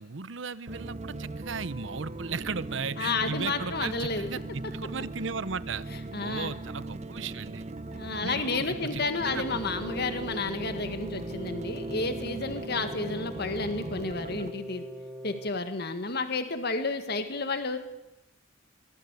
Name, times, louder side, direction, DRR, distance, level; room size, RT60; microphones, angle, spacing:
voice 1, 0.0-5.8 6.2-7.6 8.2-9.6, right 5 dB, 75° right, 17 dB, 0.8 m, -36 dB
sound 1, 0.7-14.5, right 2 dB, 35° right, 0.8 m, -39 dB
voice 2, 3.0-4.3 6.1-6.5 7.9-14.9 15.2-17.8, left 3 dB, 55° left, 8 dB, 1.8 m, -31 dB
sound 2, 9.2-15.5, equal, 5° right, 1.8 m, -42 dB
23.5 x 19.0 x 8.3 m, 0.92 s
head